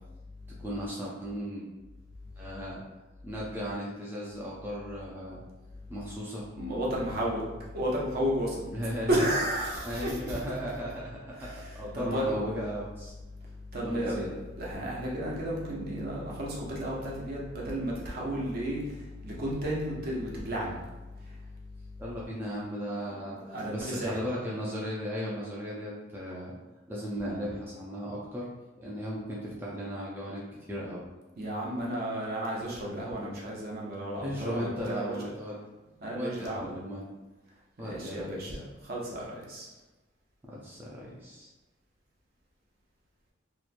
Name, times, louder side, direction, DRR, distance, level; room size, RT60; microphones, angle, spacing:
voice 1, 0.6-1.7 2.4-2.8 3.2-5.4 5.9-6.5 8.6-9.2 9.8-13.1 13.8-14.4 22.0-23.4 23.7-26.6 26.9-28.5 28.8-30.4 30.7-31.0 34.2-37.1 37.8-38.6 40.5-41.5, equal, 10° right, -6 dB, 0.3 m, -36 dB
voice 2, 6.6-7.5 7.7-8.6 9.1-10.3 11.4-12.4 13.7-14.3 14.6-18.8 19.2-20.8 23.0-24.2 31.4-35.1 36.0-36.7 37.8-38.6 38.8-39.7, right 1 dB, 55° right, -4 dB, 0.7 m, -32 dB
2.9 x 2.1 x 2.4 m, 1.1 s
head